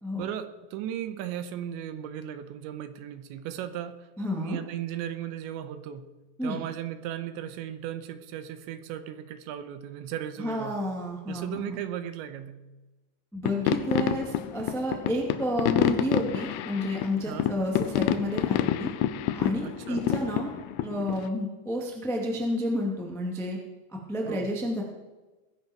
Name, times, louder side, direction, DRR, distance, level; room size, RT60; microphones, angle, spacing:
voice 1, 0.2-4.1 4.4-6.1 6.4-10.8 11.3-12.6 17.2-17.5 19.6-20.1 24.3-24.5, right 10 dB, 85° right, 10 dB, 3.1 m, -36 dB
voice 2, 4.2-4.6 6.4-6.6 10.4-11.8 13.3-18.9 19.3-20.5 20.8-23.6 24.1-24.8, equal, ahead, -1 dB, 0.5 m, -30 dB
sound 1, 13.5-21.3, left 12 dB, 85° left, 2.3 m, -28 dB
20.5 x 10.5 x 4.6 m, 1.1 s
omnidirectional pair, 5.3 m